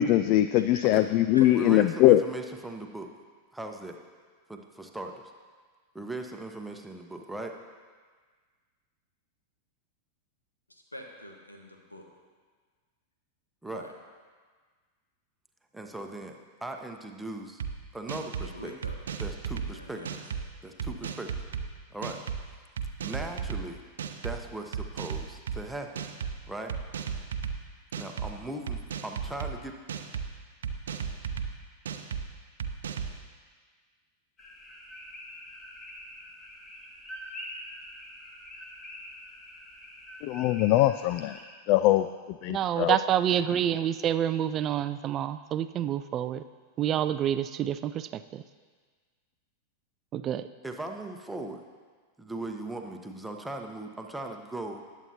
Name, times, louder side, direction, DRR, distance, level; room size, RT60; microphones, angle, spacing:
voice 1, 0.0-2.2 40.2-41.4 41.7-42.1 42.4-43.0, left 14 dB, 45° left, 11 dB, 0.3 m, -22 dB
voice 2, 1.4-3.1 3.5-4.0 4.5-5.3 5.9-7.5 13.6-13.9 15.7-16.3 16.6-17.6 17.9-18.7 19.2-20.0 20.6-21.3 21.9-22.2 23.0-23.8 24.2-25.9 26.5-26.7 28.0-29.7 50.6-51.6 52.2-54.8, right 2 dB, 5° right, 3 dB, 1.0 m, -38 dB
voice 3, 10.7-12.1 13.7-13.9 18.4-19.0 19.6-20.2, left 1 dB, 85° left, 2 dB, 1.4 m, -45 dB
sound 1, 17.6-17.7 18.1-18.5 18.8-19.7 20.0-20.4 20.8-21.6 22.0-22.4 22.8-23.6 24.0-24.3 24.7-25.6 26.0-26.3 26.7-27.5 27.9-28.3 28.7-29.5 29.9-30.3 30.6-31.5 31.9-32.2 32.6-33.1, right 7 dB, 65° right, 0.7 m, -34 dB
sound 2, 34.4-41.4, left 1 dB, 25° left, 2.2 m, -45 dB
voice 4, 42.5-46.4 46.8-48.4 50.1-50.5, right 10 dB, 30° right, 12 dB, 0.4 m, -28 dB
19.5 x 8.2 x 2.9 m, 1.5 s
figure-of-eight pair, 90°, 0 cm